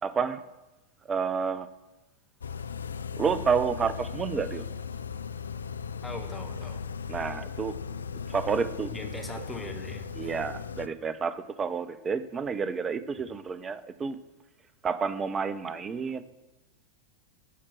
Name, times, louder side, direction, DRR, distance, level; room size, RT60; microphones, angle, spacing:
voice 1, 0.0-0.4 1.1-1.7 3.1-4.6 7.1-7.8 8.3-8.9 10.2-14.2 14.8-16.2, right 6 dB, 20° right, 14 dB, 0.5 m, -29 dB
sound 1, 2.4-10.9, left 6 dB, 70° left, 0.3 m, -37 dB
voice 2, 6.0-6.8 8.9-10.4, left 1 dB, 5° left, 4 dB, 1.2 m, -40 dB
13.0 x 4.4 x 6.0 m, 1.0 s
figure-of-eight pair, 90°, 0 cm